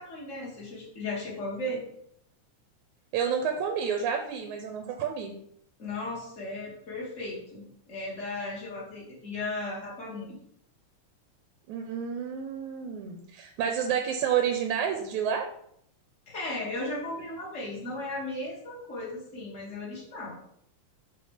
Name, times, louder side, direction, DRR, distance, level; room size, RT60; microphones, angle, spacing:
voice 1, 0.0-1.8 5.8-10.4 16.3-20.4, left 2 dB, 25° left, -4 dB, 2.4 m, -36 dB
voice 2, 3.1-5.3 11.7-15.5, right 7 dB, 75° right, 4 dB, 2.0 m, -29 dB
6.1 x 6.0 x 5.0 m, 0.70 s
omnidirectional pair, 3.8 m